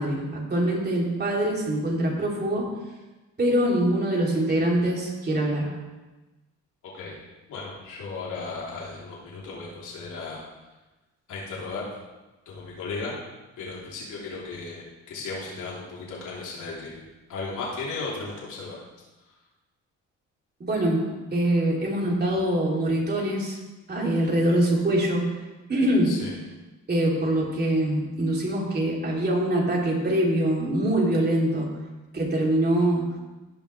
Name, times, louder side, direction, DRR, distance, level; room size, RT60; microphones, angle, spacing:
voice 1, 0.0-2.7 3.4-5.7 20.6-23.6 23.9-25.3 25.7-26.2 26.9-31.7 32.1-33.2, right 1 dB, 35° right, -3 dB, 3.4 m, -24 dB
voice 2, 6.8-7.2 7.5-10.4 11.3-11.8 12.5-13.1 13.6-18.8 26.1-26.4, left 3 dB, 80° left, -5 dB, 3.7 m, -35 dB
17.5 x 5.9 x 3.4 m, 1.1 s
cardioid pair, 90°, 30 cm